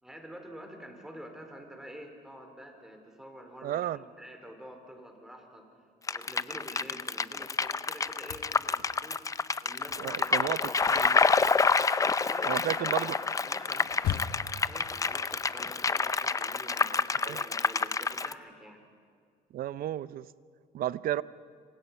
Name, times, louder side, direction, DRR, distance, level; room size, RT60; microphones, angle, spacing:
voice 1, 0.0-5.7 6.1-9.3 9.6-10.6 12.2-18.8, equal, 5° right, 3 dB, 4.3 m, -48 dB
voice 2, 3.6-4.0 10.0-11.2 12.4-13.1 17.2-17.4 19.5-20.3 20.7-21.2, right 12 dB, 60° right, 17 dB, 0.7 m, -33 dB
sound 1, 6.1-18.3, left 4 dB, 20° left, 0.5 m, -28 dB
sound 2, 8.1-9.3 9.6-14.7, left 9 dB, 65° left, 1.2 m, -39 dB
27.0 x 25.0 x 5.7 m, 2.1 s
cardioid pair, 110°, 17 cm